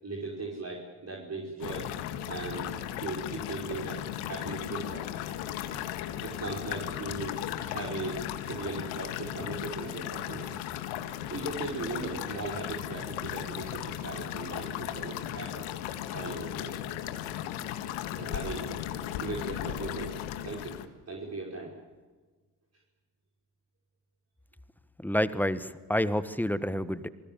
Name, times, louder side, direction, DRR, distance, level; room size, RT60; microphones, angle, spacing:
voice 1, 0.0-1.9 2.3-2.7 3.0-4.0 4.3-5.2 6.2-8.2 8.5-10.5 11.3-15.7 16.1-16.8 18.2-18.6 19.1-20.2 20.4-20.8 21.1-21.7, right 3 dB, 30° right, -2 dB, 5.7 m, -38 dB
sound 1, 1.6-20.9, left 11 dB, 75° left, 2.0 m, -36 dB
voice 2, 25.0-27.1, equal, 5° left, 13 dB, 1.5 m, -28 dB
27.0 x 21.0 x 7.5 m, 1.4 s
hypercardioid pair, 60°, 47 cm